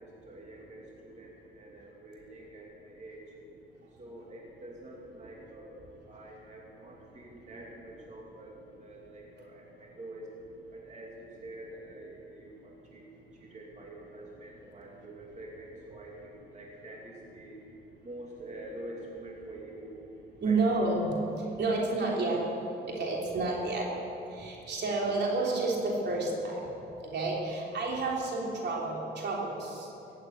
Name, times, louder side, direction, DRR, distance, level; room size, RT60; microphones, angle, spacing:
voice 1, 0.0-3.3 4.0-10.3 10.7-13.1 13.3-17.6 18.0-20.0 20.4-20.6 27.5-27.6, right 1 dB, 35° right, -3 dB, 2.9 m, -47 dB
voice 2, 20.4-21.1 21.6-22.4 22.9-23.9 24.3-26.6 27.1-29.9, right 3 dB, 60° right, -2 dB, 3.5 m, -30 dB
16.0 x 8.6 x 9.5 m, 2.9 s
cardioid pair, 90°, 20 cm